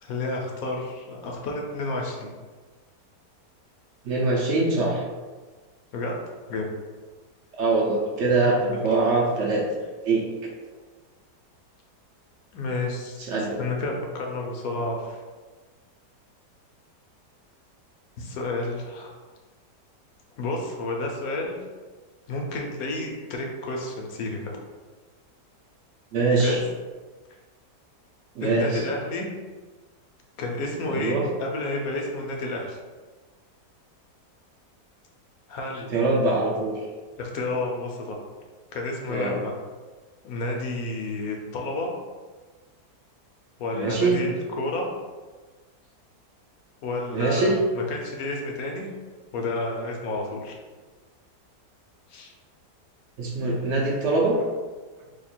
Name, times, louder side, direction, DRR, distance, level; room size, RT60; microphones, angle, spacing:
voice 1, 0.0-2.3 5.9-6.1 6.5-6.7 8.7-8.8 12.5-13.2 13.6-15.2 18.2-19.1 20.4-21.6 22.3-24.5 26.4-26.6 28.4-29.3 30.4-32.8 35.5-35.9 37.2-38.2 38.7-39.5 40.2-41.9 43.6-44.9 46.8-48.9 49.3-50.5 52.1-52.3, left 2 dB, 70° left, 0 dB, 1.0 m, -30 dB
voice 2, 4.0-5.0 7.5-9.7 10.0-10.2 13.2-13.6 26.1-26.6 28.4-28.8 30.9-31.2 35.9-36.8 39.1-39.4 43.7-44.2 47.1-47.6 53.2-54.4, right 3 dB, 70° right, -2 dB, 0.6 m, -23 dB
2.9 x 2.4 x 4.2 m, 1.3 s
omnidirectional pair, 1.8 m